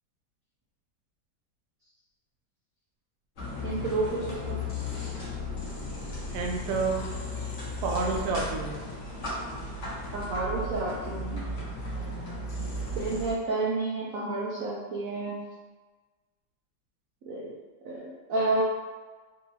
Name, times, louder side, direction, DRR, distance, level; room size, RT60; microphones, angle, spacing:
sound 1, 3.4-13.3, left 1 dB, 45° left, 1.2 m, -35 dB
voice 1, 3.6-4.6 10.1-11.4 13.0-15.4 17.2-17.5 17.8-18.6, right 2 dB, 90° right, -5 dB, 0.7 m, -30 dB
voice 2, 6.3-7.1 7.8-8.8 12.6-12.8, right 4 dB, 70° right, 1 dB, 1.0 m, -30 dB
4.0 x 2.7 x 2.8 m, 1.4 s
omnidirectional pair, 2.1 m